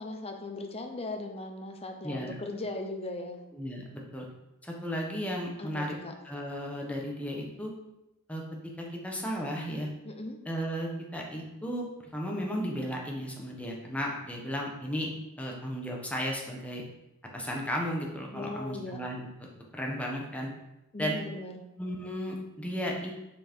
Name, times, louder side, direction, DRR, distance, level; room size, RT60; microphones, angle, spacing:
voice 1, 0.0-3.4 5.6-6.1 10.0-10.4 18.3-19.1 20.9-21.6, left 2 dB, 30° left, 4 dB, 0.8 m, -38 dB
voice 2, 3.5-4.3 4.6-5.9 6.2-7.7 8.3-8.4 8.8-9.9 10.5-11.9 12.1-15.1 15.4-16.8 17.3-19.3 19.7-20.5 21.0-21.2 21.8-23.1, equal, 5° left, -1 dB, 1.2 m, -34 dB
5.8 x 4.9 x 4.5 m, 0.95 s
head